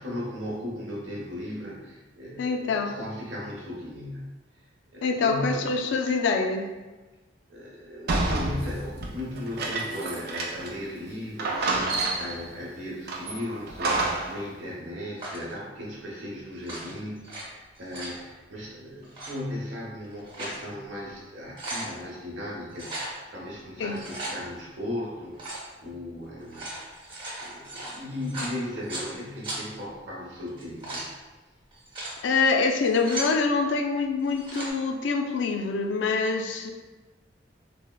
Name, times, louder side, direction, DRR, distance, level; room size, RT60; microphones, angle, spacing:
voice 1, 0.0-4.3 4.9-5.8 7.5-26.7 27.0-31.1, left 1 dB, 90° right, -4 dB, 0.8 m, -37 dB
voice 2, 2.4-3.0 5.0-6.7 23.8-23.9 32.2-36.7, left 4 dB, 75° left, 4 dB, 0.3 m, -25 dB
sound 1, 8.1-10.8 11.1-11.2 11.4-12.5 13.1-14.4, right 2 dB, 55° right, 0.4 m, -29 dB
sound 2, 15.2-15.5 16.5-17.4 17.7-18.2 19.0-19.3 20.0-20.6 21.0-21.1 21.4-21.9 22.7-23.1 23.8-24.3 25.3-25.7 26.4-29.1 29.4-29.6 30.5-31.1 31.7-32.1 32.7-33.4 34.2-34.7, right 1 dB, 25° right, 0.8 m, -36 dB
3.4 x 2.1 x 2.2 m, 1.2 s
head